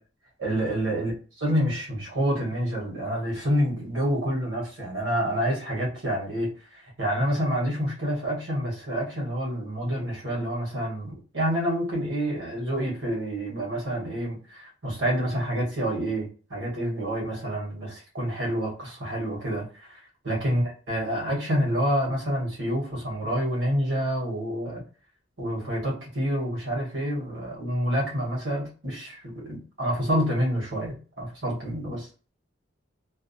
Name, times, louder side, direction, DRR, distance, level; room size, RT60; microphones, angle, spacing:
voice 1, 0.4-1.1 1.4-20.0 20.2-24.8 25.4-32.1, equal, 80° right, -3 dB, 1.2 m, -28 dB
2.6 x 2.1 x 2.6 m, 0.37 s
head